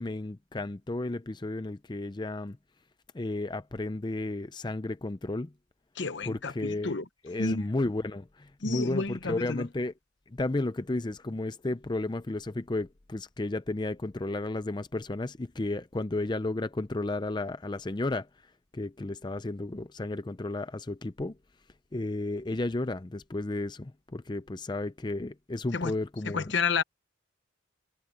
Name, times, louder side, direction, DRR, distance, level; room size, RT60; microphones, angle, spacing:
voice 1, 0.0-2.6 3.1-5.5 6.3-6.9 7.2-9.9 10.3-18.3 18.7-21.4 21.9-26.6, left 2 dB, 20° left, 0.5 m, -33 dB
voice 2, 6.0-7.0 7.4-7.6 8.6-9.7 25.7-25.9 26.2-26.8, left 4 dB, 65° left, 1.0 m, -30 dB
head